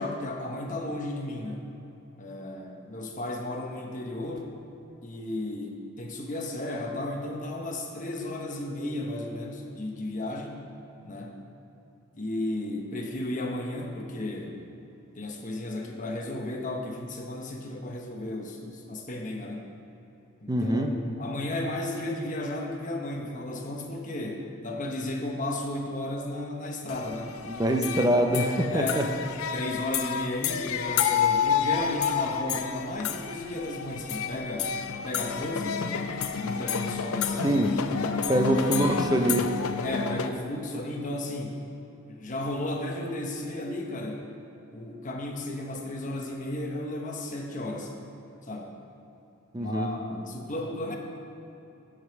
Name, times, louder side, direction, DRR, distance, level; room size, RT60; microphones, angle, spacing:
voice 1, 0.0-1.6 2.2-4.5 5.0-10.6 11.0-11.4 12.1-14.6 15.2-19.6 20.4-27.4 28.7-29.1 29.5-34.7 35.0-36.1 36.4-37.6 38.0-38.7 39.8-41.6 42.1-44.2 44.7-47.9 48.4-48.7 49.6-51.0, left 1 dB, 35° left, 1 dB, 1.0 m, -34 dB
voice 2, 20.5-20.9 27.5-29.0 37.4-37.7 38.3-39.5 49.5-49.9, right 1 dB, 20° right, 4 dB, 0.6 m, -24 dB
sound 1, 26.9-40.3, left 7 dB, 85° left, 0.5 m, -30 dB
9.7 x 5.2 x 7.0 m, 3.0 s
head